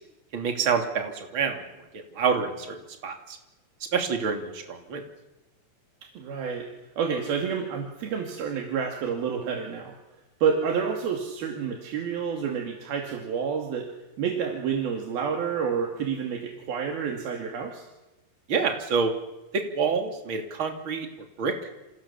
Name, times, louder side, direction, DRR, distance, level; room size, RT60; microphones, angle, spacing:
voice 1, 0.3-1.6 1.9-2.8 3.0-3.4 3.9-5.0 18.5-19.1 19.5-21.1 21.4-21.5, right 5 dB, 35° right, 4 dB, 3.3 m, -27 dB
voice 2, 6.2-6.7 7.0-10.0 10.4-13.9 14.2-17.9, right 6 dB, 80° right, 2 dB, 4.4 m, -29 dB
28.5 x 27.5 x 7.2 m, 1.0 s
omnidirectional pair, 4.2 m